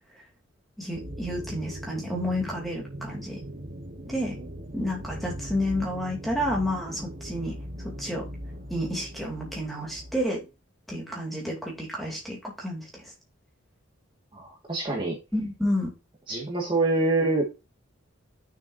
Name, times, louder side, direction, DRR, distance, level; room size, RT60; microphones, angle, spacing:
voice 1, 0.8-3.4 4.1-4.3 4.7-8.2 8.7-10.4 10.9-13.1 15.3-15.9, equal, ahead, -2 dB, 2.8 m, -30 dB
sound 1, 0.9-10.2, equal, 40° right, 1.1 m, -39 dB
voice 2, 14.3-15.2 16.3-17.6, right 2 dB, 25° right, -2 dB, 1.8 m, -26 dB
9.2 x 6.9 x 2.7 m, 0.26 s
head